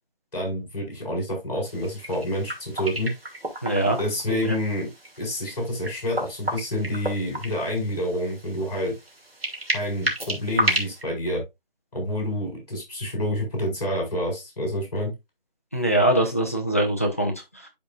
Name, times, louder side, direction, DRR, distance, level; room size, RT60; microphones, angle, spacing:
voice 1, 0.3-3.1 4.0-4.9 5.2-8.9 9.7-11.4 11.9-15.1, left 1 dB, 45° left, 4.7 m, -28 dB
sound 1, 1.7-11.0, right 1 dB, 85° right, 2.5 m, -32 dB
voice 2, 3.6-4.0 4.3-4.5 15.7-17.7, right 1 dB, 15° left, 0.6 m, -23 dB
11.5 x 4.1 x 2.4 m
figure-of-eight pair, 160°, 29 cm